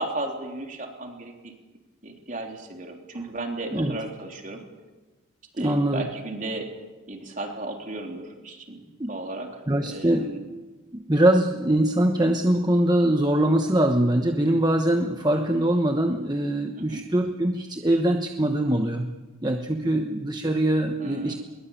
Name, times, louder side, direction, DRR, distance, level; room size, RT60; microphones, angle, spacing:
voice 1, 0.0-1.5 2.0-4.6 5.5-6.7 7.1-10.5 16.8-17.0 21.0-21.4, right 2 dB, 40° right, 3 dB, 3.6 m, -35 dB
voice 2, 5.6-6.1 9.0-9.1 9.7-10.3 10.9-19.1 19.4-21.3, right 1 dB, 20° right, 5 dB, 1.1 m, -23 dB
22.0 x 21.0 x 9.0 m, 1.2 s
head